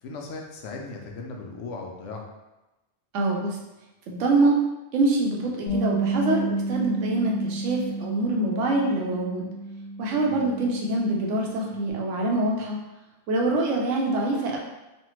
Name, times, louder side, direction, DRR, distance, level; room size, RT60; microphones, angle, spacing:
voice 1, 0.0-2.3 10.3-10.4, left 3 dB, 80° left, 1 dB, 0.9 m, -37 dB
voice 2, 3.1-3.6 4.1-4.6 4.9-9.5 10.0-12.8 13.3-14.6, right 2 dB, 85° right, 0 dB, 1.0 m, -25 dB
Bass guitar, 5.7-11.9, right 2 dB, 45° left, 0.7 m, -31 dB
3.2 x 2.2 x 3.0 m, 1.0 s
omnidirectional pair, 1.2 m